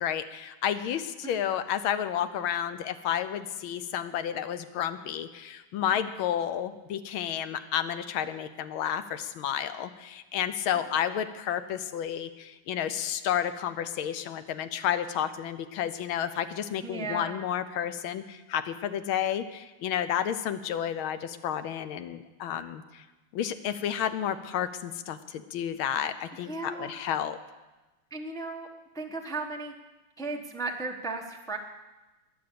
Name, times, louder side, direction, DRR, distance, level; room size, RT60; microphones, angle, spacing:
voice 1, 0.0-23.0 23.3-27.4, left 9 dB, 75° left, 11 dB, 1.5 m, -31 dB
voice 2, 16.8-17.4 26.5-26.9 28.1-28.7 28.9-29.7 30.2-31.6, right 3 dB, 5° left, 2 dB, 0.5 m, -35 dB
20.5 x 7.0 x 6.8 m, 1.1 s
omnidirectional pair, 2.4 m